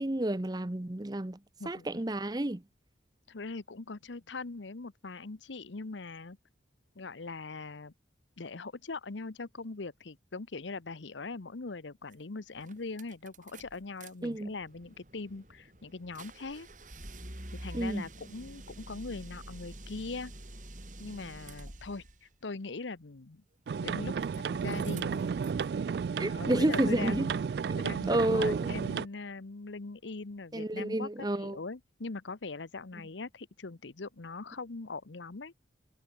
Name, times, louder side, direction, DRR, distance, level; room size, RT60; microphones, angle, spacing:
voice 1, 0.0-1.4 1.7-2.6 14.2-14.5 17.7-18.1 26.2-27.3 28.1-28.8 30.5-31.6, right 1 dB, 20° right, 0.7 m, -30 dB
voice 2, 1.6-2.0 3.3-6.4 7.0-7.9 8.4-16.7 17.6-20.3 21.0-23.4 23.8-24.1 24.4-25.3 26.2-27.3 27.8-31.1 31.4-35.5, left 3 dB, 85° left, 1.0 m, -41 dB
sound 1, 12.1-12.2 12.6-14.1 14.4-22.2 23.7-24.4 24.6-25.6, right 1 dB, 45° right, 5.4 m, -48 dB
sound 2, 23.7-29.1, right 6 dB, 60° right, 0.3 m, -32 dB
head